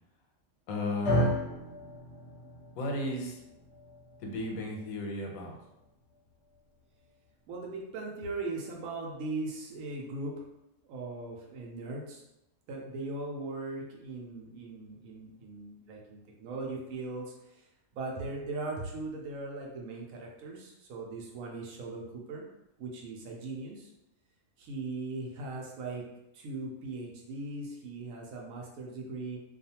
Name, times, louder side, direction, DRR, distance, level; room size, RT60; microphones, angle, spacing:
voice 1, 0.7-1.4 2.8-3.4 4.2-5.6, left 1 dB, 90° left, 1 dB, 1.0 m, -34 dB
sound 1, 1.0-9.3, equal, 65° left, 0.8 m, -37 dB
voice 2, 7.5-10.4 10.8-12.2 12.7-17.7 17.9-22.5 22.8-23.9 24.6-26.0 26.3-29.4, right 3 dB, 80° right, -1 dB, 1.0 m, -39 dB
2.4 x 2.4 x 2.7 m, 0.87 s
omnidirectional pair, 1.4 m